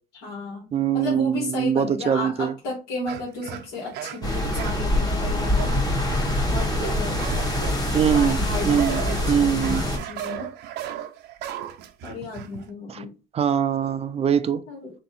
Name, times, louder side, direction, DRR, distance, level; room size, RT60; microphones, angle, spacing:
voice 1, 0.2-6.1 6.5-7.2 8.1-10.5 12.0-13.1 14.7-14.9, left 2 dB, 85° left, 1.9 m, -34 dB
voice 2, 0.7-2.5 7.9-8.4 8.6-9.0 9.3-9.8 12.9-13.1 13.3-14.6, right 8 dB, 35° right, 0.4 m, -22 dB
sound 1, 3.1-4.9 5.5-6.2 6.5-12.7, right 11 dB, 80° right, 0.6 m, -36 dB
sound 2, 4.2-10.0, left 1 dB, 20° left, 1.1 m, -24 dB
3.7 x 2.8 x 4.0 m
cardioid pair, 110°, 17 cm